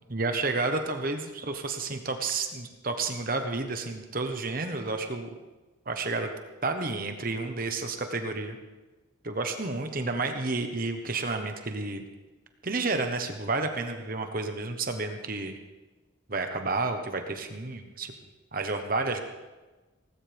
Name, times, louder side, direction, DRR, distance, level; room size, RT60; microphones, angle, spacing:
voice 1, 0.0-5.3 5.9-6.3 6.6-8.6 9.2-12.0 12.6-15.6 16.3-18.1 18.5-19.2, right 3 dB, 45° right, 6 dB, 1.2 m, -31 dB
18.5 x 15.5 x 3.6 m, 1.2 s
head